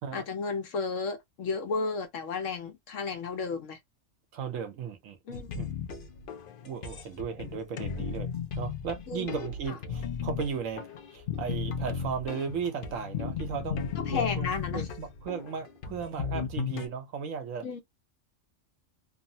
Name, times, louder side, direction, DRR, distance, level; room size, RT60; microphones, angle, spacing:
voice 1, 0.1-3.8 5.3-5.5 9.1-9.3 9.7-9.8 14.0-14.9 17.6-17.8, left 4 dB, 75° left, 1.1 m, -33 dB
voice 2, 4.3-6.0 6.6-8.3 8.6-17.7, right 6 dB, 80° right, 1.2 m, -36 dB
sound 1, 5.3-16.9, left 7 dB, 60° left, 0.6 m, -35 dB
3.0 x 2.0 x 2.7 m
omnidirectional pair, 1.3 m